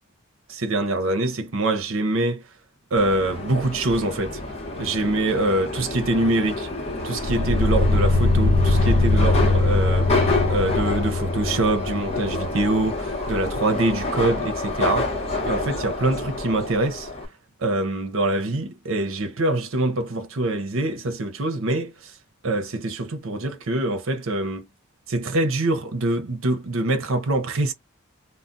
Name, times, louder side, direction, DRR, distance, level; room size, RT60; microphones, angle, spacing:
voice 1, 0.5-2.5 2.9-4.4 4.8-6.7 7.0-17.1 17.6-22.1 22.4-24.7 25.1-27.7, right 2 dB, 75° right, 0.7 m, -24 dB
Subway metro underground, 3.0-17.3, left 2 dB, 30° left, 0.9 m, -28 dB
sound 1, 7.2-12.4, left 2 dB, 65° left, 0.6 m, -21 dB
2.3 x 2.1 x 3.8 m
head